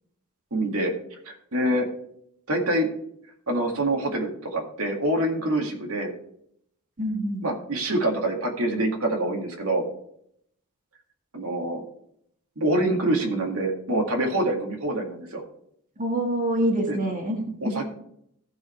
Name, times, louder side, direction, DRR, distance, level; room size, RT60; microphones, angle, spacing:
voice 1, 0.5-0.9 1.3-1.9 2.5-2.9 3.5-6.1 7.4-9.8 11.3-11.8 12.6-15.4 16.9-17.0 17.6-17.9, right 1 dB, 85° right, 1 dB, 2.1 m, -25 dB
voice 2, 7.0-7.4 16.0-17.7, right 1 dB, 40° right, 2 dB, 1.6 m, -26 dB
15.0 x 5.1 x 4.4 m, 0.71 s
head